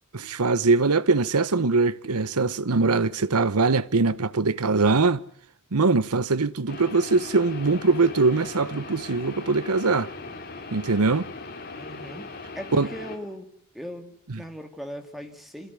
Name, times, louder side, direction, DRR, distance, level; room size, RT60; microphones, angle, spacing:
voice 1, 0.1-5.2 5.7-10.1 10.7-11.3 12.7-12.9 14.3-14.4, right 3 dB, 85° right, 1.0 m, -22 dB
sound 1, 6.7-13.2, left 3 dB, 45° left, 3.6 m, -39 dB
voice 2, 11.7-12.3 12.5-13.5 13.7-15.7, equal, ahead, 2.9 m, -38 dB
26.5 x 17.0 x 9.8 m
head